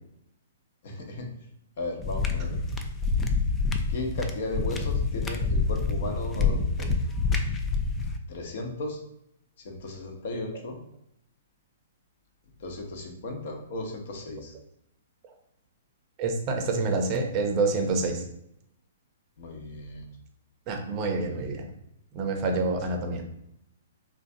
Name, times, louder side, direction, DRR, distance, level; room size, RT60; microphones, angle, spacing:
voice 1, 0.8-1.3 1.8-2.6 3.3-3.4 3.9-6.9 8.3-9.0 9.6-10.8 12.6-14.5 19.4-20.1 21.1-21.4, left 2 dB, 60° left, 3 dB, 0.8 m, -35 dB
sound 1, 2.0-8.2, left 4 dB, 15° left, 0.3 m, -27 dB
voice 2, 16.2-18.2 20.7-21.7 22.1-23.2, right 3 dB, 35° right, 4 dB, 0.6 m, -27 dB
3.8 x 2.3 x 2.7 m, 0.78 s
hypercardioid pair, 145°, 0 cm